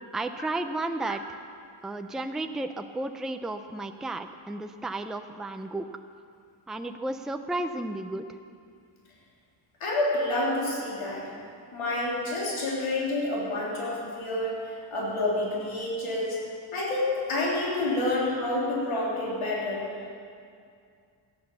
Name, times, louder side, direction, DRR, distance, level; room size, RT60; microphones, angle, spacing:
voice 1, 0.1-1.4 1.8-5.9 6.7-8.3, right 2 dB, ahead, 7 dB, 0.5 m, -33 dB
voice 2, 9.8-11.2 11.7-16.4 16.7-19.9, left 2 dB, 75° left, -5 dB, 3.5 m, -28 dB
16.5 x 9.1 x 6.9 m, 2.3 s
cardioid pair, 95°, 49 cm